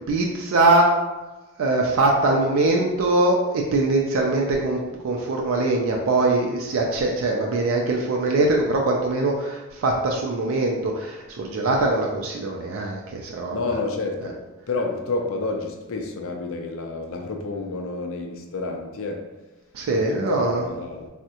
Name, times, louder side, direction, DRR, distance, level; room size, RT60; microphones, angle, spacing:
voice 1, 0.1-0.9 1.6-4.8 5.0-13.6 19.7-20.6, right 2 dB, 65° right, 0 dB, 0.3 m, -22 dB
voice 2, 13.5-14.4 14.7-19.3 19.9-21.1, left 3 dB, 65° left, 3 dB, 0.4 m, -29 dB
3.5 x 2.1 x 2.8 m, 1.1 s
head